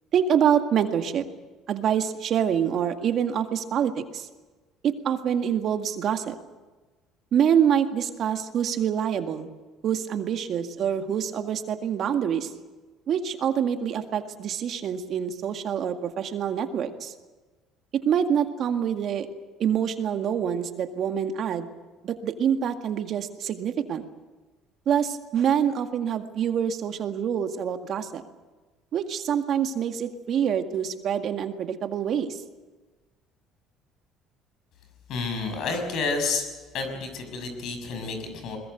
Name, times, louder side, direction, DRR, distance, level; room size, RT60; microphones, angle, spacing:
voice 1, 0.1-1.3 1.7-4.3 4.8-6.4 7.3-9.5 9.8-12.5 13.1-17.1 17.9-19.3 19.6-21.7 22.0-24.1 24.9-28.2 28.9-32.4, right 8 dB, 55° right, 7 dB, 1.9 m, -26 dB
voice 2, 35.1-36.4 36.7-38.6, left 4 dB, 65° left, 6 dB, 6.2 m, -30 dB
21.5 x 21.0 x 8.0 m, 1.3 s
supercardioid pair, 85°, 0 cm